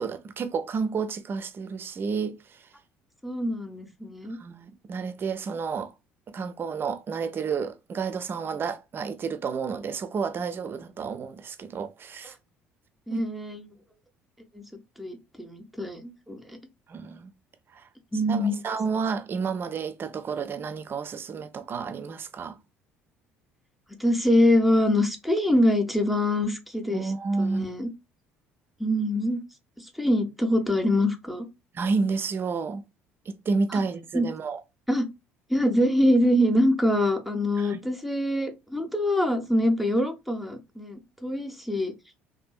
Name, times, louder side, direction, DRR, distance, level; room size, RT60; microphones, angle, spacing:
voice 1, 0.0-2.6 4.4-5.9 6.3-12.3 13.1-13.3 16.9-17.3 17.7-17.8 18.3-22.6 26.9-27.7 31.7-32.8 33.3-34.6 37.6-37.8, right 5 dB, 35° right, 0.4 m, -30 dB
voice 2, 3.2-4.4 13.1-13.7 14.5-14.6 15.0-16.6 18.1-18.6 24.0-27.1 27.4-27.9 28.8-29.4 29.8-31.5 33.7-33.8 34.1-34.3 34.9-35.0 35.5-41.9, left 1 dB, ahead, 0.7 m, -24 dB
2.6 x 2.5 x 2.3 m
hypercardioid pair, 60°, 6 cm